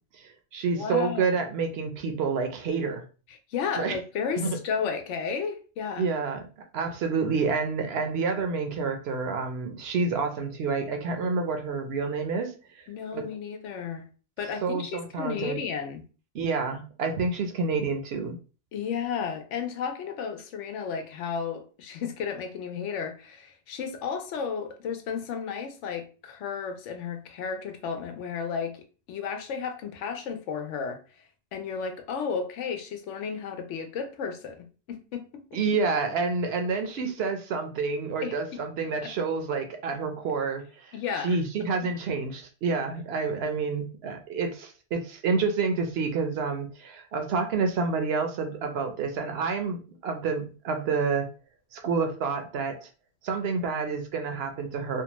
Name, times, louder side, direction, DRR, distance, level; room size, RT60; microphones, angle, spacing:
voice 1, 0.2-3.0 3.7-4.0 4.4-4.6 6.0-6.4 6.7-12.8 13.1-13.2 14.6-15.6 16.3-18.4 35.5-40.9 41.2-51.3 51.7-52.9 53.2-55.0, right 4 dB, 65° right, 0.8 m, -28 dB
voice 2, 0.7-1.4 3.3-6.1 12.9-14.1 14.4-16.0 18.7-31.0 31.5-35.6 38.2-38.6 39.0-39.1 40.9-41.7, left 6 dB, 90° left, 0.9 m, -33 dB
2.7 x 2.2 x 2.9 m
omnidirectional pair, 1.2 m